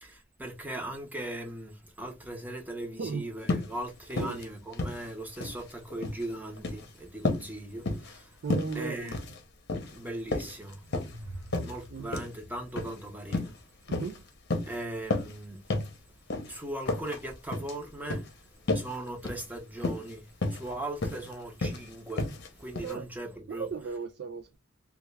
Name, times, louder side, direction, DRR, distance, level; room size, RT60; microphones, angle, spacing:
voice 1, 0.0-8.3 8.7-9.2 9.9-10.8 11.6-13.5 14.6-15.6 16.5-18.3 18.7-22.3 22.6-23.7, right 1 dB, 10° right, 0.7 m, -39 dB
sound 1, 3.4-3.7 4.1-4.4 4.7-5.6 5.9-6.2 6.6-6.8 7.2-7.5 7.8-8.2 8.5-8.7 9.1-9.4 9.7-10.0 10.3-11.2 11.5-11.7 12.1-12.3 12.7-12.9 13.3-13.6 13.9-14.2 14.5-14.7 15.1-15.4 15.7-15.9 16.3-16.5 16.8-17.2 17.5-17.7 18.1-18.3 18.7-18.9 19.2-19.4 19.8-20.1 20.4-20.7 21.0-21.3 21.6-21.8 22.2-22.5 22.8-22.9, left 2 dB, 55° left, 0.7 m, -31 dB
voice 2, 8.4-9.1 11.9-12.1 13.9-14.2 22.8-23.1 23.5-24.5, right 5 dB, 55° right, 0.3 m, -35 dB
sound 2, 10.6-13.8, equal, 80° right, 0.7 m, -47 dB
3.2 x 2.3 x 3.2 m
head